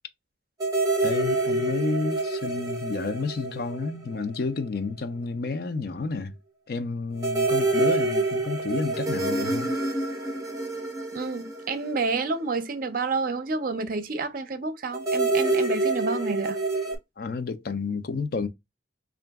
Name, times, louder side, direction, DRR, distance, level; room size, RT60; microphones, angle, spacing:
sound 1, 0.6-4.4 4.6-4.7 7.2-12.6 14.9-17.0, right 2 dB, 20° right, 0.9 m, -27 dB
voice 1, 1.0-6.3 6.7-9.7 17.2-18.5, left 4 dB, 55° left, 0.4 m, -30 dB
voice 2, 11.1-16.6, right 4 dB, 50° right, 0.6 m, -29 dB
3.8 x 2.5 x 3.4 m
head